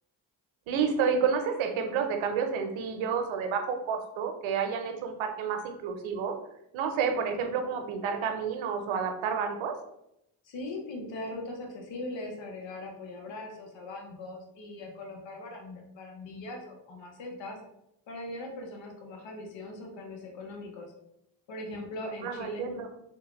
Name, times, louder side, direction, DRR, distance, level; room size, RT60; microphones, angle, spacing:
voice 1, 0.7-6.3 6.7-9.8 22.2-22.9, right 6 dB, 75° right, 5 dB, 0.7 m, -30 dB
voice 2, 10.4-17.6 18.1-20.9 21.5-22.7, left 2 dB, 65° left, 2 dB, 0.9 m, -40 dB
3.5 x 2.3 x 3.0 m, 0.82 s
supercardioid pair, 50°, 49 cm